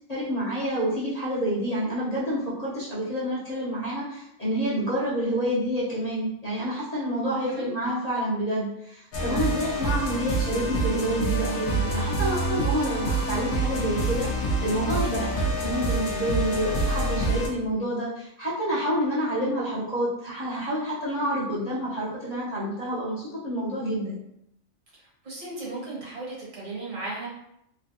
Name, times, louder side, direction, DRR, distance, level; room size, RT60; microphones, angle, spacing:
voice 1, 0.1-24.2, equal, 35° left, -10 dB, 0.8 m, -28 dB
sound 1, 9.1-17.5, right 2 dB, 70° left, 1.0 m, -27 dB
voice 2, 25.2-27.3, right 2 dB, 70° right, -5 dB, 1.5 m, -35 dB
3.2 x 2.2 x 2.7 m, 0.77 s
omnidirectional pair, 1.4 m